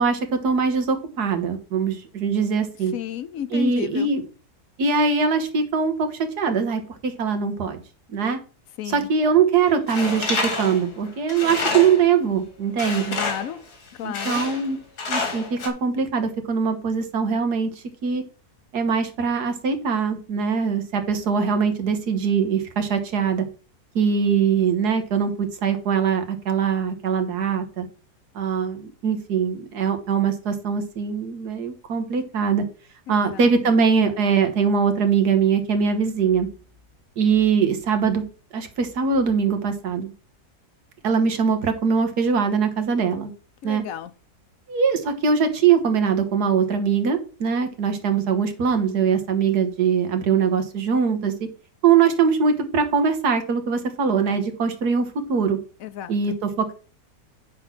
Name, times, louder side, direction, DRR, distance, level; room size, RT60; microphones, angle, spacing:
voice 1, 0.0-2.9 3.5-4.2 4.8-7.8 8.1-8.4 8.9-13.2 14.0-14.8 15.1-17.7 18.0-18.2 18.7-23.4 23.9-27.8 28.3-32.6 33.1-36.5 37.2-38.2 38.5-40.1 41.0-43.3 43.6-43.8 44.7-51.3 51.8-55.6 56.1-56.7, right 6 dB, 80° right, 1.8 m, -22 dB
voice 2, 2.9-4.1 8.8-9.1 13.2-13.6 14.0-14.4 33.1-33.5 43.6-44.1 55.8-56.4, left 10 dB, 65° left, 1.0 m, -32 dB
Tools, 9.9-12.1 12.8-13.6 14.1-14.7 15.0-15.7, left 3 dB, 80° left, 2.3 m, -28 dB
9.6 x 3.8 x 6.0 m
omnidirectional pair, 1.7 m